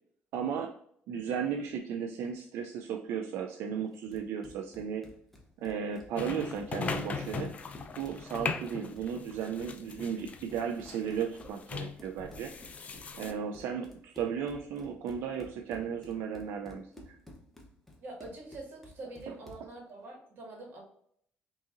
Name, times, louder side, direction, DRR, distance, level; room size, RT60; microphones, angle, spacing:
voice 1, 0.3-0.7 1.1-5.0 5.6-7.5 8.0-12.5 13.1-17.2, right 7 dB, 80° right, 4 dB, 0.4 m, -35 dB
Run, 3.9-19.7, equal, 5° left, 0.8 m, -53 dB
sound 1, 6.2-13.3, left 5 dB, 30° left, 0.4 m, -39 dB
voice 2, 18.0-20.8, right 2 dB, 55° right, 0 dB, 1.5 m, -45 dB
5.5 x 2.7 x 2.5 m, 0.66 s
cardioid pair, 140°, 4 cm